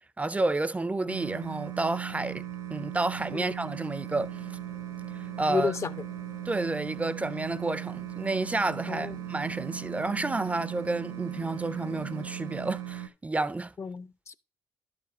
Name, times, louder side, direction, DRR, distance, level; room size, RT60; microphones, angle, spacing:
voice 1, 0.2-2.4 2.7-4.4 5.1-5.7 6.5-13.7, right 2 dB, 20° right, 0.4 m, -30 dB
sound 1, 1.1-13.1, right 13 dB, 75° right, 1.0 m, -38 dB
sound 2, 4.0-12.7, left 6 dB, 60° left, 1.2 m, -51 dB
voice 2, 5.5-5.9 8.9-9.2 13.8-14.3, left 5 dB, 40° left, 0.5 m, -31 dB
11.0 x 5.1 x 4.1 m
hypercardioid pair, 55°, 7 cm